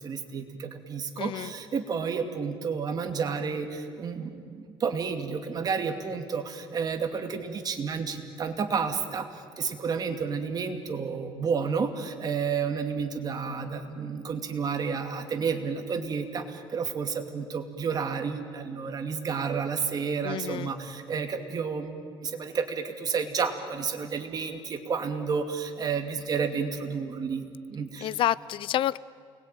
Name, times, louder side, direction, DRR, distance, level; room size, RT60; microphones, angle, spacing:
voice 1, 0.0-28.1, right 5 dB, 40° right, 6 dB, 2.5 m, -31 dB
voice 2, 1.2-1.5 20.2-20.7 28.0-29.0, left 12 dB, 60° left, 20 dB, 0.6 m, -28 dB
28.5 x 21.5 x 9.1 m, 2.2 s
cardioid pair, 125°, 10 cm